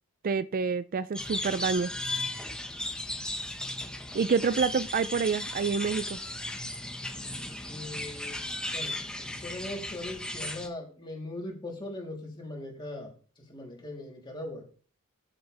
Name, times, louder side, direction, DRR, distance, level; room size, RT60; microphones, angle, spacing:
voice 1, 0.2-1.9 4.1-6.2, right 5 dB, 40° right, 0.4 m, -27 dB
sound 1, 1.1-10.7, left 1 dB, 5° left, 1.2 m, -36 dB
voice 2, 7.6-8.4 8.7-8.9 9.3-14.6, left 1 dB, 20° left, 3.3 m, -40 dB
13.5 x 7.8 x 3.4 m
head